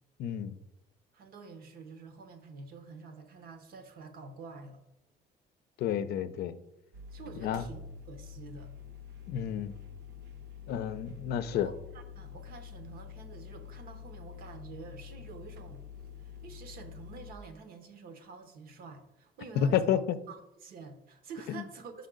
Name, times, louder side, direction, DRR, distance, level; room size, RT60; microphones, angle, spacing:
voice 1, 0.2-0.6 5.8-6.5 7.4-7.6 9.3-9.7 10.7-11.7 19.6-20.2 21.5-21.6, left 9 dB, 70° left, 12 dB, 0.5 m, -30 dB
voice 2, 1.1-4.8 7.1-8.7 11.5-15.8 16.2-20.0 20.3-22.1, right 4 dB, 60° right, 8 dB, 1.0 m, -48 dB
sound 1, 6.9-17.3, left 7 dB, 80° right, 0.7 m, -47 dB
5.4 x 5.4 x 3.8 m, 0.87 s
cardioid pair, 110°, 17 cm